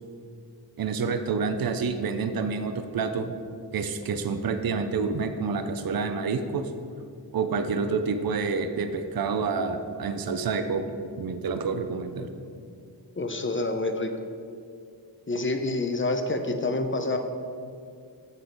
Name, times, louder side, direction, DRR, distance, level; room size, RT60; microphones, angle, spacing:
voice 1, 0.8-3.3 3.7-6.7 7.3-10.8 11.2-12.3, right 5 dB, 55° right, 8 dB, 0.6 m, -28 dB
voice 2, 13.2-14.1 15.3-17.2, left 2 dB, 30° left, 6 dB, 0.7 m, -27 dB
8.1 x 4.0 x 6.0 m, 2.4 s
wide cardioid pair, 60°, 43 cm